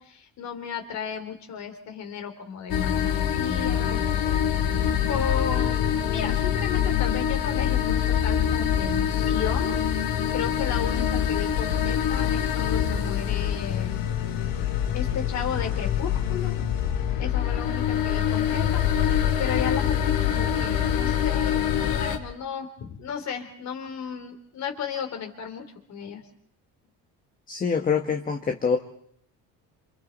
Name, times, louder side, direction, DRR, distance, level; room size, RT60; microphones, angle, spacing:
voice 1, 0.0-4.4 5.1-9.8 10.3-14.0 14.5-16.6 17.2-18.9 19.4-26.2, left 7 dB, 45° left, 4 dB, 3.9 m, -34 dB
sound 1, 2.7-22.2, left 9 dB, 65° left, 2.6 m, -25 dB
voice 2, 27.5-28.8, left 6 dB, 25° left, 3 dB, 1.4 m, -25 dB
29.0 x 28.0 x 4.2 m, 0.68 s
cardioid pair, 160°, 37 cm